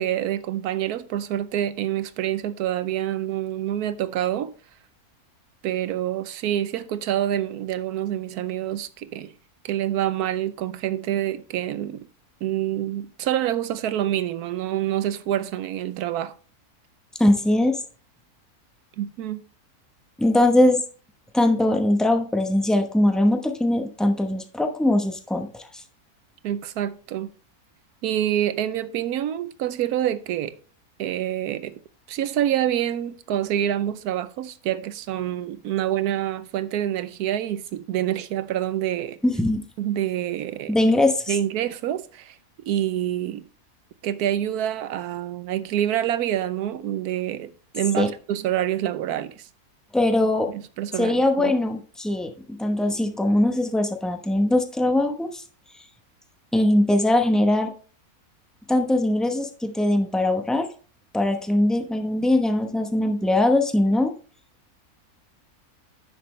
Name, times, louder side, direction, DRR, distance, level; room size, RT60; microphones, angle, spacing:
voice 1, 0.0-4.5 5.6-9.3 9.6-12.1 12.4-16.3 19.0-19.4 26.4-27.3 28.0-30.6 31.0-31.8 32.1-39.2 39.8-40.8 41.3-42.4 42.6-43.5 44.0-49.5 50.5-51.5, right 11 dB, 90° right, 1.2 m, -27 dB
voice 2, 17.2-17.8 20.2-20.8 21.3-25.7 39.2-39.6 40.7-41.3 48.0-48.1 49.9-50.5 51.0-52.3 52.6-55.4 56.5-57.7 58.7-60.7 61.1-64.1, left 1 dB, ahead, 0.7 m, -21 dB
10.0 x 6.7 x 3.2 m
omnidirectional pair, 1.6 m